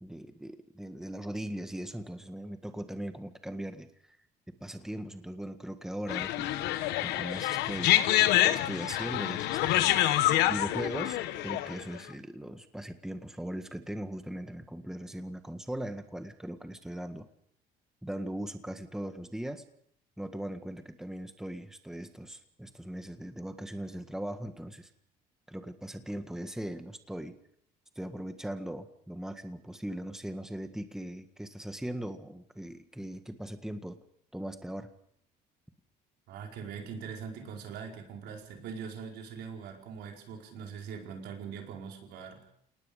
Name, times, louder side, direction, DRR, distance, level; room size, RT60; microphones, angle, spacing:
voice 1, 0.0-4.2 4.5-6.5 7.0-7.9 8.5-10.0 10.5-17.3 18.0-19.6 20.2-24.9 25.5-27.4 27.9-34.0 34.3-34.9, right 1 dB, 5° right, 7 dB, 1.7 m, -39 dB
sound 1, 6.1-12.0, left 14 dB, 90° left, 1.1 m, -27 dB
voice 2, 36.3-42.5, right 6 dB, 85° right, 1 dB, 4.8 m, -42 dB
29.0 x 19.0 x 5.3 m, 0.69 s
cardioid pair, 110°, 17 cm